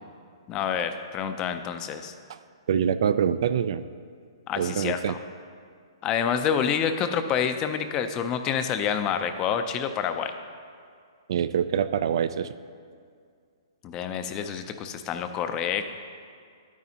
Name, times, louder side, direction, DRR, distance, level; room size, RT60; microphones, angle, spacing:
voice 1, 0.5-2.1 4.5-5.2 6.0-10.3 13.8-15.8, left 8 dB, 25° left, 9 dB, 0.5 m, -28 dB
voice 2, 2.7-3.8 4.6-5.2 11.3-12.5, right 8 dB, 60° right, 13 dB, 0.3 m, -25 dB
9.6 x 9.2 x 2.8 m, 2.2 s
hypercardioid pair, 145°, 3 cm